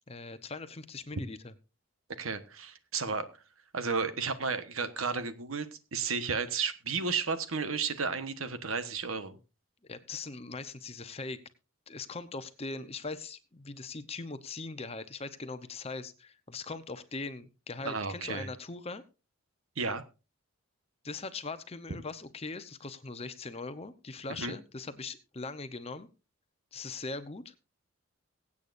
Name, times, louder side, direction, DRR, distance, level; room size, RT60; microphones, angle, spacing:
voice 1, 0.1-1.5 9.9-11.4 11.9-19.0 21.0-26.1 26.7-27.5, left 3 dB, 30° left, 11 dB, 0.8 m, -40 dB
voice 2, 2.2-3.3 3.7-9.4 17.8-18.5 19.8-20.0 24.4-24.5, right 5 dB, 85° right, 11 dB, 1.3 m, -33 dB
23.0 x 8.6 x 2.6 m, 0.31 s
head